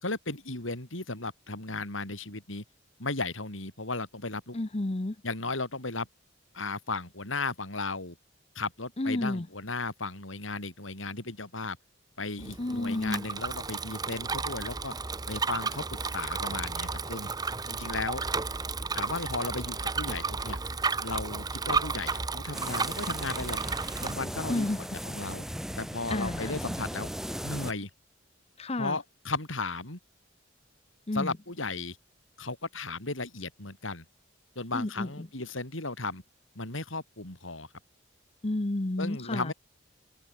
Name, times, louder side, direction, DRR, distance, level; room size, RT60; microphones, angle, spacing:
voice 1, 0.0-2.6 3.0-4.6 5.2-6.1 6.5-8.2 8.6-11.8 12.2-14.9 15.3-15.8 16.1-17.3 17.7-18.2 18.9-20.6 21.0-23.6 24.0-25.4 25.8-27.1 27.4-27.9 28.8-30.0 31.1-32.0 32.4-34.0 34.6-36.2 36.6-37.7 39.0-39.5, left 3 dB, 85° left, 5.6 m, -35 dB
voice 2, 4.5-5.2 9.0-9.5 12.6-13.2 24.5-24.9 26.1-26.6 28.6-29.0 31.1-31.3 34.7-35.3 38.4-39.5, left 2 dB, 30° left, 0.8 m, -31 dB
Bicycle, 12.4-24.1, right 4 dB, 20° right, 0.8 m, -33 dB
sound 1, 22.5-27.7, equal, ahead, 5.7 m, -37 dB
head